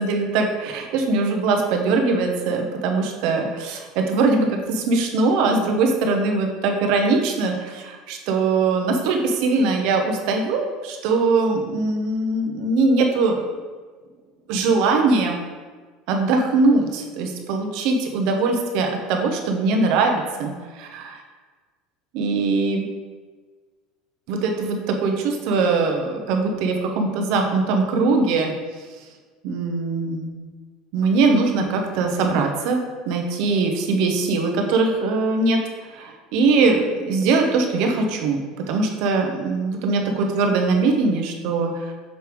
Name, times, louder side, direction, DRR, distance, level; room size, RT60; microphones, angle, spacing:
voice 1, 0.0-13.4 14.5-15.4 16.1-21.2 22.1-22.8 24.3-28.5 29.4-30.5 30.9-32.8 33.1-35.6 35.9-38.4 38.7-41.9, right 3 dB, 70° right, 3 dB, 0.9 m, -21 dB
6.5 x 3.4 x 4.6 m, 1.4 s
supercardioid pair, 115°, 0 cm